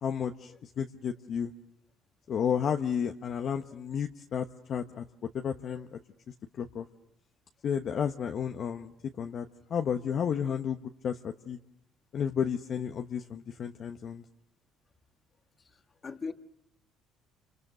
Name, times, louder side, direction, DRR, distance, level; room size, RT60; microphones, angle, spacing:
voice 1, 0.0-1.5 2.3-5.0 5.3-6.0 6.5-6.9 7.6-11.6 12.1-14.2, left 7 dB, 50° left, 4 dB, 1.1 m, -32 dB
voice 2, 15.6-16.3, left 4 dB, 30° left, 7 dB, 1.6 m, -40 dB
28.5 x 27.5 x 6.7 m, 0.80 s
cardioid pair, 100°, 0 cm